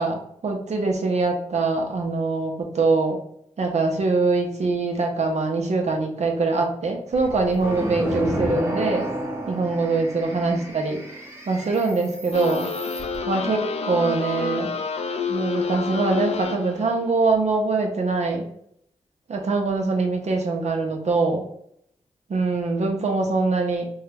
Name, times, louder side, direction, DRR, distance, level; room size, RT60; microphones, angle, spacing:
voice 1, 0.0-3.2 3.6-9.1 9.5-11.0 11.5-12.7 13.2-14.7 15.3-18.5 19.3-21.4 22.3-23.9, right 3 dB, 70° right, 2 dB, 0.8 m, -23 dB
sound 1, 7.1-13.2, right 1 dB, 20° right, 1.1 m, -30 dB
sound 2, 12.3-16.9, left 6 dB, 60° left, 0.4 m, -29 dB
3.6 x 2.2 x 3.4 m, 0.70 s
cardioid pair, 45°, 12 cm